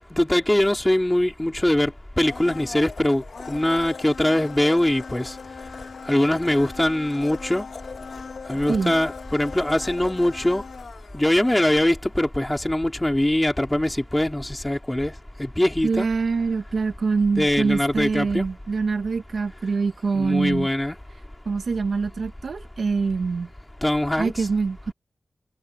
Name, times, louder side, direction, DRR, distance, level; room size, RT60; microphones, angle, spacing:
voice 1, 0.1-5.3 6.1-7.6 8.5-10.6 11.1-15.1 15.4-16.1 17.4-18.4 20.1-21.0 23.8-24.5, left 1 dB, 15° left, 4.2 m, -22 dB
Domestic sounds home sounds, 2.2-12.1 12.4-12.5, left 5 dB, 75° left, 2.2 m, -39 dB
voice 2, 15.8-20.7 21.4-23.5 24.2-24.9, right 4 dB, 75° right, 1.5 m, -24 dB
cardioid pair, 60°, 0 cm